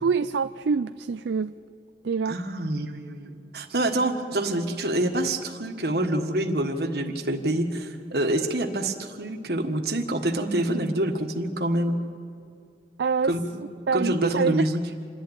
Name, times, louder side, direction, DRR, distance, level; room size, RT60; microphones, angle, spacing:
voice 1, 0.0-1.6 2.0-2.4 13.0-13.3 13.9-14.7, right 5 dB, 80° right, 12 dB, 0.4 m, -25 dB
voice 2, 2.2-12.0 13.2-13.4 13.9-14.8, right 1 dB, 60° right, 5 dB, 1.5 m, -26 dB
27.5 x 11.0 x 8.8 m, 2.4 s
head